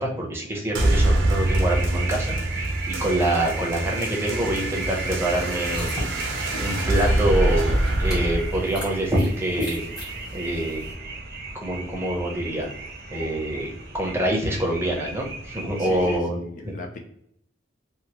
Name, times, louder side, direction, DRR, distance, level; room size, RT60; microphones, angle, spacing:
voice 1, 0.0-5.9 6.6-7.6 8.0-9.9 10.3-10.8 11.5-12.7 13.1-16.4 16.6-16.7, right 1 dB, 15° right, -1 dB, 0.7 m, -26 dB
sound 1, 0.7-9.8, right 1 dB, 90° right, 0.7 m, -25 dB
sound 2, 1.4-16.2, right 2 dB, 50° right, 0.6 m, -36 dB
sound 3, 5.3-10.9, left 1 dB, 20° left, 1.3 m, -36 dB
voice 2, 15.8-17.0, left 2 dB, 45° left, 3 dB, 0.4 m, -38 dB
2.9 x 2.6 x 2.9 m, 0.71 s
head